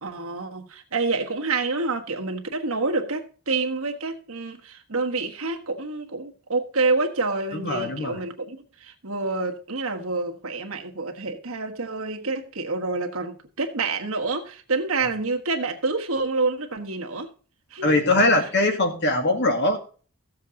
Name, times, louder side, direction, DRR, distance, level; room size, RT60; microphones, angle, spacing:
voice 1, 0.0-17.3 17.7-17.9 18.4-18.5, right 3 dB, 80° right, 1.4 m, -28 dB
voice 2, 7.5-8.2 17.8-19.8, left 2 dB, 55° left, 2.1 m, -21 dB
15.0 x 7.4 x 3.8 m
head